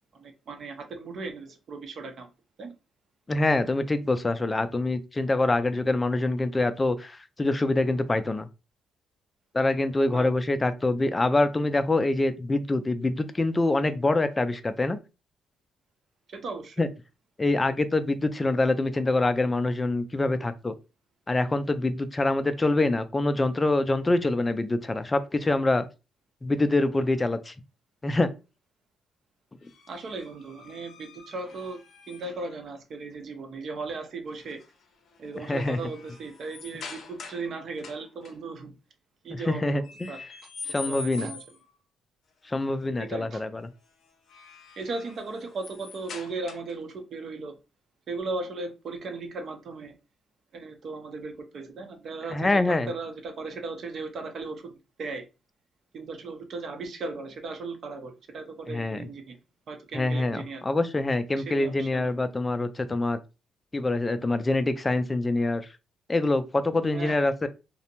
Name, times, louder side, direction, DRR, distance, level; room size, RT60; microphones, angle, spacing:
voice 1, 0.1-2.3 2.6-2.7 10.1-10.3 16.3-16.8 29.9-31.8 32.1-34.6 35.2-38.8 39.2-40.2 40.6-41.4 43.0-43.4 44.8-47.6 48.1-50.0 50.5-55.2 55.9-59.4 59.7-60.6 61.5-62.0 66.9-67.3, right 3 dB, 55° right, 0.6 m, -37 dB
voice 2, 3.3-8.5 9.5-15.0 16.8-16.9 17.4-20.7 21.3-25.9 26.4-27.5 28.0-28.3 35.5-35.8 39.3-40.1 40.7-41.3 42.5-43.6 52.3-52.9 58.7-59.1 59.9-63.2 63.7-65.7 66.1-67.5, left 2 dB, 20° left, 0.3 m, -25 dB
sound 1, 29.6-32.5 34.3-34.7 35.1-37.5 37.8-38.3 39.8-41.7 44.0-46.9, left 4 dB, 60° left, 0.6 m, -44 dB
2.6 x 2.1 x 2.8 m
cardioid pair, 90°, 0 cm